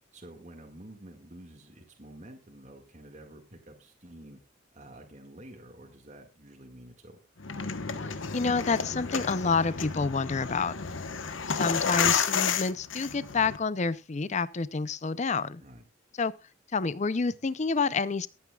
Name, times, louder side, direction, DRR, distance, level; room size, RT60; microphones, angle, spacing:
voice 1, 0.1-4.4 4.7-7.2 10.9-11.3 15.6-15.8, right 1 dB, 35° right, 1.9 m, -49 dB
sound 1, 7.4-13.6, left 6 dB, 85° left, 1.1 m, -31 dB
voice 2, 8.3-10.8 11.5-15.6 16.2-16.3 16.7-18.3, left 4 dB, 35° left, 0.5 m, -28 dB
22.0 x 9.3 x 2.3 m
head